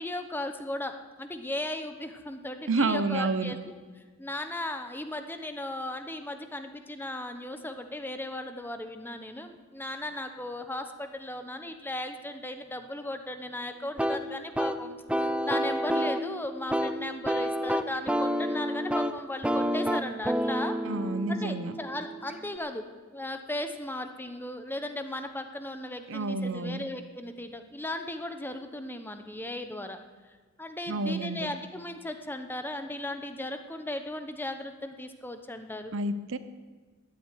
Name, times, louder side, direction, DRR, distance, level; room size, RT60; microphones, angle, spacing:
voice 1, 0.0-3.8 4.2-15.0 15.4-20.8 21.3-22.8 23.1-30.0 30.6-35.9, left 1 dB, 10° left, 7 dB, 0.9 m, -36 dB
voice 2, 2.7-3.5 20.9-21.7 26.1-26.8 30.9-31.5 35.9-36.4, right 3 dB, 65° right, 12 dB, 0.7 m, -29 dB
sound 1, 14.0-22.6, equal, 5° right, 0.5 m, -30 dB
13.0 x 9.2 x 9.4 m, 1.4 s
head